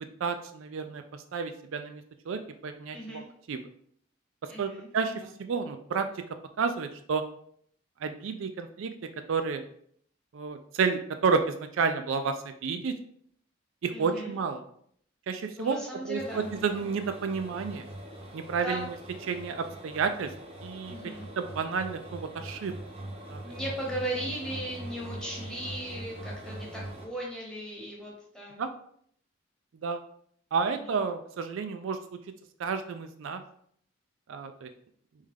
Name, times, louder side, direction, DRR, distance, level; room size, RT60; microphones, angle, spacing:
voice 1, 0.2-3.6 4.6-6.1 6.6-7.2 8.0-8.9 9.3-9.6 10.3-12.9 13.8-14.6 15.3-15.8 16.1-17.8 18.3-18.9 19.3-20.3 20.6-21.0 21.4-22.7 23.3-23.4 28.6-28.7 29.8-30.0 30.5-32.0 32.6-33.4 34.3-34.7, right 5 dB, 75° right, 8 dB, 0.4 m, -31 dB
voice 2, 2.9-3.3 4.5-4.9 13.9-14.4 15.6-16.9 18.6-18.9 20.9-21.3 23.4-28.6 30.8-31.0, right 1 dB, 5° left, -4 dB, 1.0 m, -37 dB
sound 1, 16.2-27.1, right 1 dB, 30° right, 0.6 m, -42 dB
3.6 x 3.2 x 3.4 m, 0.64 s
head